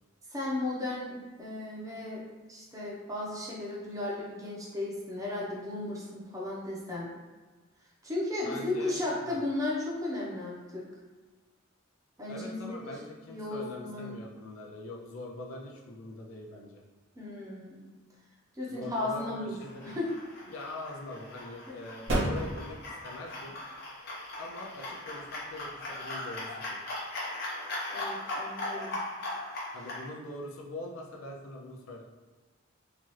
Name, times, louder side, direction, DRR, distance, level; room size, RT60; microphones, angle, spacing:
voice 1, 0.3-2.2 2.5-7.1 8.0-10.8 12.2-12.9 13.3-14.2 17.1-17.8 18.5-19.5 19.8-20.1 27.9-29.0, left 2 dB, 15° right, -5 dB, 0.7 m, -35 dB
voice 2, 8.4-9.4 12.3-16.8 18.7-20.0 20.5-23.6 24.4-26.8 29.7-32.0, left 1 dB, 80° left, 0 dB, 0.4 m, -43 dB
sound 1, 19.5-30.0, left 2 dB, 50° left, 0.8 m, -39 dB
sound 2, 20.2-26.8, right 1 dB, 65° right, 0.9 m, -38 dB
2.9 x 2.4 x 3.1 m, 1.3 s
head